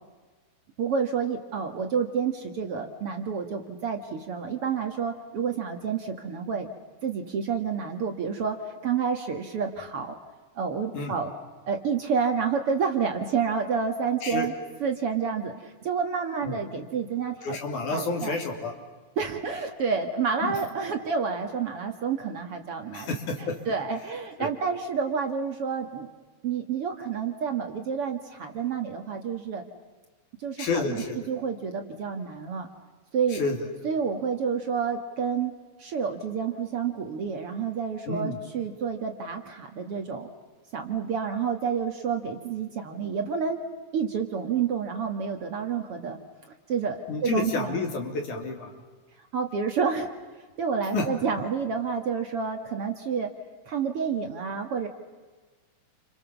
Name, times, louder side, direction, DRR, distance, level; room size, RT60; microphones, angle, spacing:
voice 1, 0.8-6.7 7.0-10.2 10.6-11.3 11.6-14.5 14.8-17.6 17.9-18.4 19.2-23.1 23.4-26.1 26.4-29.6 30.4-32.7 33.1-33.4 33.8-35.5 35.8-40.3 40.7-43.6 43.9-46.2 46.7-47.8 49.3-50.1 50.6-53.3 53.7-54.9, right 6 dB, 50° right, 5 dB, 2.2 m, -29 dB
voice 2, 17.4-18.7 20.4-20.5 22.9-23.6 24.4-24.5 30.6-31.2 33.3-33.6 38.1-38.4 47.1-48.8 50.9-51.1, left 3 dB, 65° left, 3 dB, 4.6 m, -29 dB
29.5 x 26.5 x 7.1 m, 1.4 s
omnidirectional pair, 3.8 m